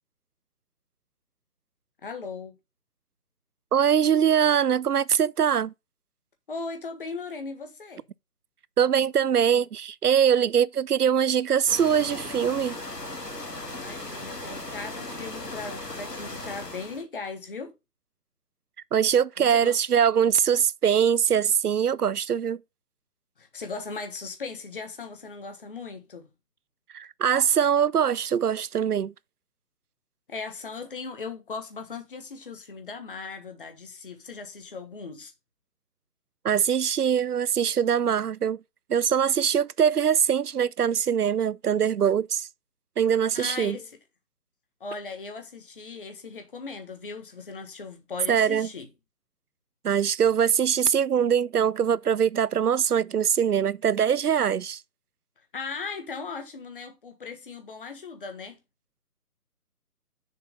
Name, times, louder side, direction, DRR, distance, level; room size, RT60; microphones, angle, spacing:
voice 1, 2.0-2.6 6.5-8.0 13.6-17.7 19.4-19.8 23.4-26.3 30.3-35.3 43.3-44.0 44.8-48.9 55.5-58.6, left 4 dB, 35° left, 1.4 m, -38 dB
voice 2, 3.7-5.7 8.8-12.8 18.9-22.6 26.9-29.1 36.4-38.6 38.9-42.5 43.0-43.8 48.3-48.7 49.8-54.8, right 8 dB, 70° right, 0.5 m, -22 dB
sound 1, 11.7-17.0, left 2 dB, 85° left, 2.0 m, -37 dB
6.9 x 4.5 x 5.0 m
figure-of-eight pair, 150°, 47 cm